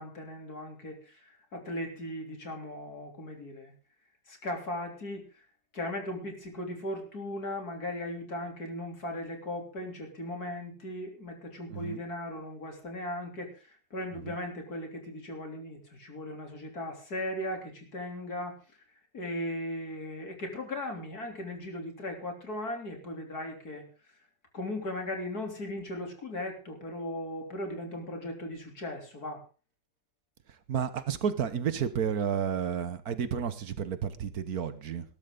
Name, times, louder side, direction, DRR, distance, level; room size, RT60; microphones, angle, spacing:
voice 1, 0.0-3.7 4.3-5.3 5.7-18.6 19.1-23.8 24.5-29.4, left 1 dB, 60° left, 2 dB, 4.0 m, -37 dB
voice 2, 30.7-35.0, right 7 dB, 60° right, 12 dB, 1.6 m, -31 dB
19.5 x 12.5 x 3.9 m, 0.35 s
omnidirectional pair, 1.9 m